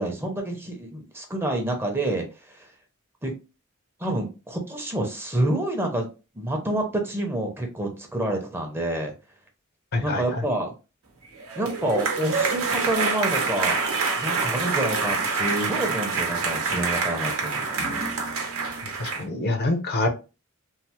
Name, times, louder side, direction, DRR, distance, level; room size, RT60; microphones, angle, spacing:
voice 1, 0.0-2.7 3.2-3.3 4.0-6.1 6.4-9.1 10.0-10.7 11.6-13.8 14.2-17.8, right 1 dB, 10° right, 2 dB, 0.6 m, -28 dB
voice 2, 9.9-10.4 19.0-20.1, left 2 dB, 50° left, 5 dB, 0.6 m, -26 dB
sound 1, 11.4-19.2, right 4 dB, 90° right, 0.8 m, -26 dB
3.1 x 2.0 x 2.8 m, 0.31 s
head